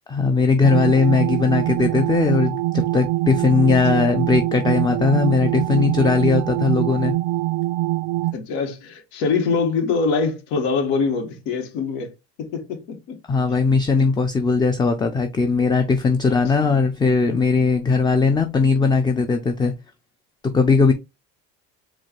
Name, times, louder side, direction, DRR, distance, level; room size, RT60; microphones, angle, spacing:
voice 1, 0.1-7.1 13.3-19.7 20.5-20.9, left 4 dB, 15° left, 0.5 m, -19 dB
sound 1, 0.6-8.3, right 17 dB, 80° right, 0.5 m, -23 dB
voice 2, 8.3-12.1 12.4-13.2, left 4 dB, 80° left, 1.6 m, -24 dB
4.7 x 2.5 x 4.4 m
cardioid pair, 135°, 30 cm